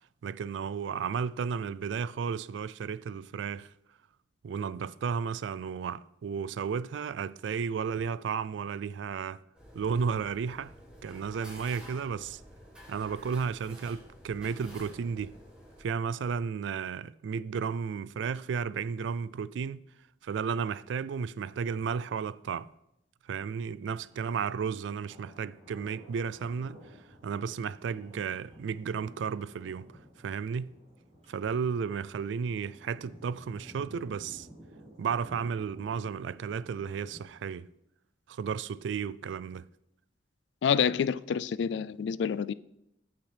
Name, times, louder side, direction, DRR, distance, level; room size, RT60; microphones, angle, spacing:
voice 1, 0.2-3.7 4.4-9.4 9.7-10.7 11.0-12.4 12.9-15.3 15.8-19.8 20.2-22.7 23.3-26.8 27.2-29.9 30.2-30.7 31.3-34.5 35.0-37.7 38.3-39.7, right 6 dB, 85° right, 0.3 m, -33 dB
sound 1, 9.5-15.8, equal, 5° right, 2.4 m, -51 dB
Thunder, 24.1-37.3, equal, 35° right, 3.4 m, -53 dB
voice 2, 40.6-42.5, left 7 dB, 75° left, 0.3 m, -28 dB
14.0 x 6.0 x 3.4 m
head